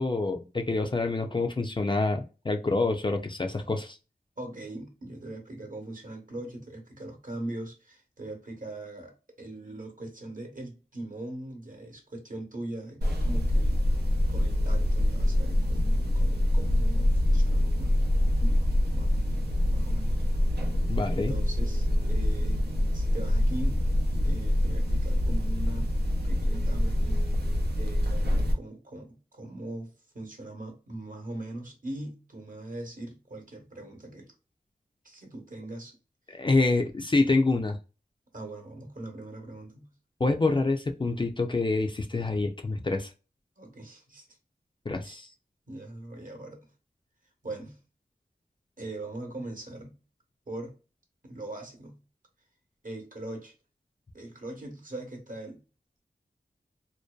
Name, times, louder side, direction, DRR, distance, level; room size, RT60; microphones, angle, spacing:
voice 1, 0.0-4.0 20.9-21.3 36.3-37.8 40.2-43.1 44.9-45.3, left 3 dB, 30° left, 0.4 m, -26 dB
voice 2, 4.4-13.8 14.3-20.2 21.1-22.6 22.9-23.8 24.2-25.9 26.2-27.5 27.8-34.3 35.0-36.0 38.3-39.9 43.6-44.3 45.0-45.2 45.7-46.7 47.4-47.8 48.8-50.0 50.5-50.7 51.2-52.0 52.8-53.5 54.1-55.6, right 2 dB, 55° right, 0.9 m, -41 dB
sound 1, 13.0-28.5, left 1 dB, 90° right, 0.5 m, -25 dB
2.6 x 2.2 x 2.2 m
wide cardioid pair, 55°, 17 cm